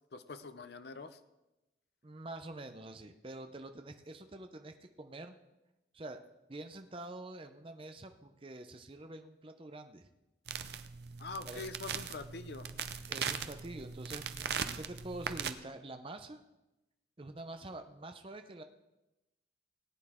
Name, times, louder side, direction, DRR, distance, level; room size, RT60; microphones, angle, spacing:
voice 1, 0.1-1.2 11.2-12.7, left 3 dB, 65° left, 10 dB, 0.6 m, -44 dB
voice 2, 2.0-5.4 5.9-6.2 6.5-10.1 11.4-11.6 13.1-16.4 17.2-18.6, right 2 dB, 30° right, 7 dB, 0.6 m, -46 dB
sound 1, 10.5-15.5, right 7 dB, 65° right, 0.6 m, -40 dB
18.5 x 9.1 x 3.7 m, 0.99 s
head